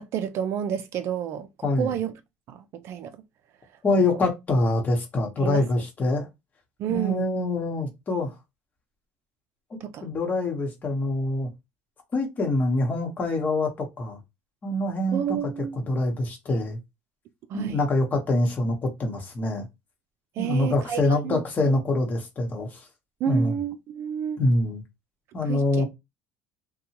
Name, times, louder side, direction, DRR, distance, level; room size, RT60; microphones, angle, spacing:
voice 1, 0.0-2.1 2.5-3.2 3.9-4.0 5.4-5.6 6.8-7.2 9.8-10.1 15.1-15.8 17.5-17.8 20.4-21.8 23.2-24.4 25.5-25.8, right 9 dB, 55° right, 0.4 m, -30 dB
voice 2, 1.6-1.9 3.8-6.3 6.9-8.3 9.7-11.5 12.1-14.2 14.6-15.4 15.8-16.8 17.5-19.7 20.4-22.8 23.3-23.5 24.4-24.8 25.3-25.9, left 2 dB, 30° left, 1.0 m, -25 dB
2.7 x 2.2 x 2.8 m
cardioid pair, 115°, 5 cm